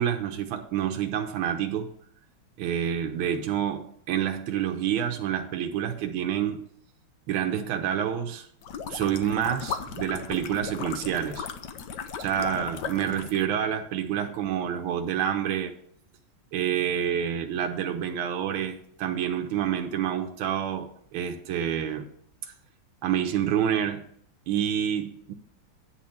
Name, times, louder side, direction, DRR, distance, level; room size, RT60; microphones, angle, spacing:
voice 1, 0.0-1.9 2.6-6.7 7.3-8.5 8.9-11.5 12.2-15.7 16.5-22.1 23.0-24.1 24.5-25.3, right 9 dB, 80° right, 1.6 m, -28 dB
sound 1, 8.6-13.5, left 6 dB, 65° left, 1.2 m, -36 dB
9.4 x 4.3 x 7.0 m
omnidirectional pair, 2.3 m